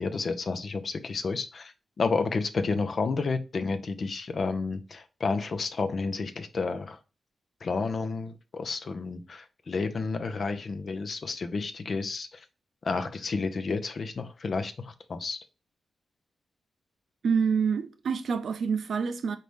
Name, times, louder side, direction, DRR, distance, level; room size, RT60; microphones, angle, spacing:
voice 1, 0.0-7.0 7.6-12.3 12.8-15.4, left 4 dB, 55° left, 0.6 m, -31 dB
voice 2, 17.2-19.4, right 6 dB, 75° right, 0.5 m, -27 dB
4.1 x 3.3 x 3.3 m
cardioid pair, 70°, 0 cm